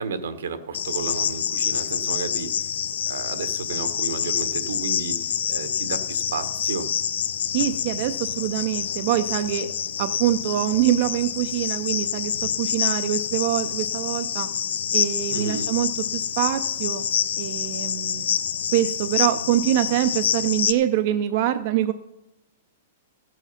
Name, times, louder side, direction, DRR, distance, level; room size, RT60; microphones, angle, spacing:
voice 1, 0.0-2.5 3.0-5.2 5.5-6.9 15.3-15.7, right 5 dB, 75° right, 10 dB, 1.2 m, -32 dB
Cricket, 0.7-20.7, left 8 dB, 70° left, 0.7 m, -27 dB
voice 2, 7.5-9.7 10.0-14.5 14.9-17.1 17.4-18.3 18.7-21.9, right 12 dB, 35° right, 10 dB, 0.4 m, -24 dB
15.0 x 8.2 x 5.7 m, 0.91 s
hypercardioid pair, 180°, 0 cm